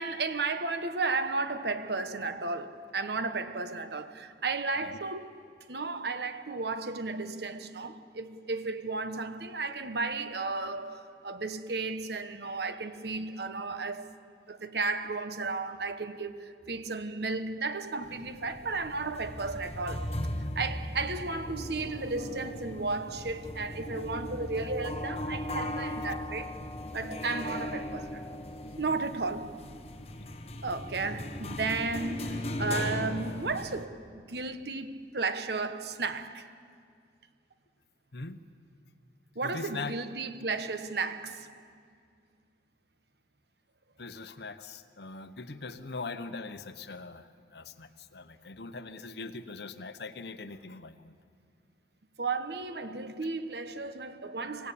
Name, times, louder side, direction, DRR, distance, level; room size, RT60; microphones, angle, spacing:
voice 1, 0.0-14.1 14.5-26.6 26.9-28.4 28.8-29.6 30.6-36.5 39.3-41.6 52.2-54.7, right 3 dB, 65° right, 1.2 m, -34 dB
sound 1, 18.0-33.8, left 1 dB, 35° left, 1.1 m, -38 dB
voice 2, 38.1-38.4 39.4-40.0 44.0-51.1, left 3 dB, 65° left, 1.0 m, -41 dB
25.5 x 16.5 x 8.6 m
head